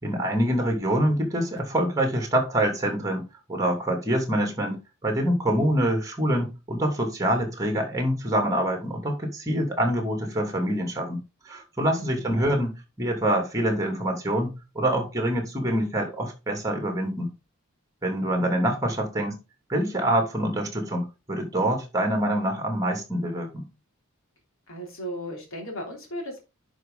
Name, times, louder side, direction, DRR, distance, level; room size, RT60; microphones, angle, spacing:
voice 1, 0.0-11.2 11.5-17.3 18.0-19.4 19.7-23.6, right 1 dB, 15° right, 2.8 m, -25 dB
voice 2, 12.0-12.5 24.7-26.4, equal, 65° left, 3.2 m, -36 dB
10.5 x 5.2 x 3.9 m
head